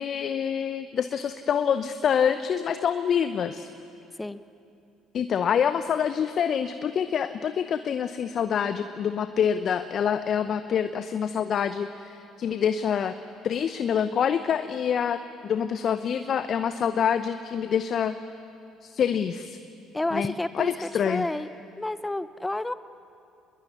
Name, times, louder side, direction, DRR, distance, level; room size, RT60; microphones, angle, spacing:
voice 1, 0.0-3.7 5.1-13.1 13.4-18.2 18.8-19.6 20.1-21.3, left 8 dB, 50° left, 11 dB, 0.8 m, -26 dB
voice 2, 19.9-20.7 21.1-21.5 21.8-22.7, left 2 dB, 10° left, 15 dB, 0.8 m, -29 dB
26.5 x 21.0 x 9.6 m, 2.7 s
figure-of-eight pair, 55°, 0 cm